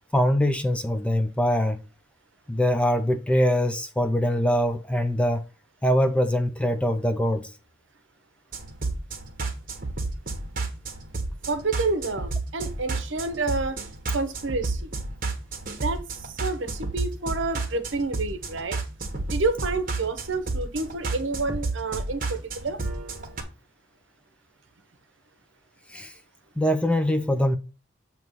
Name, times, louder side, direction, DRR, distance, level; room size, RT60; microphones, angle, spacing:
voice 1, 0.1-1.8 2.5-5.4 5.8-7.5 25.9-26.1 26.6-27.6, equal, 5° left, 0.4 m, -23 dB
sound 1, 8.5-23.4, right 3 dB, 45° right, 1.1 m, -32 dB
voice 2, 11.5-13.8 14.1-14.9 15.7-18.8 19.3-22.8, right 3 dB, 65° right, 0.9 m, -29 dB
7.7 x 2.9 x 5.4 m
head